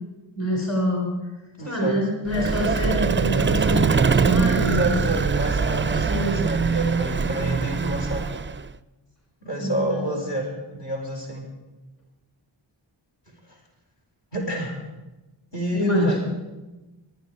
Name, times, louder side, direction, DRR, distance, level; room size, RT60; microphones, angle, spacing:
voice 1, 0.3-1.1 1.6-5.1 5.9-6.4 9.6-10.0 15.7-16.1, left 1 dB, 35° left, -1 dB, 3.5 m, -25 dB
voice 2, 1.6-1.9 4.6-8.2 9.4-11.4 14.3-14.8 15.5-16.2, right 1 dB, 60° left, -3 dB, 5.0 m, -29 dB
Vehicle, 2.3-8.7, right 5 dB, 25° right, 0.4 m, -22 dB
24.0 x 9.7 x 5.3 m, 1.1 s
wide cardioid pair, 60°, 47 cm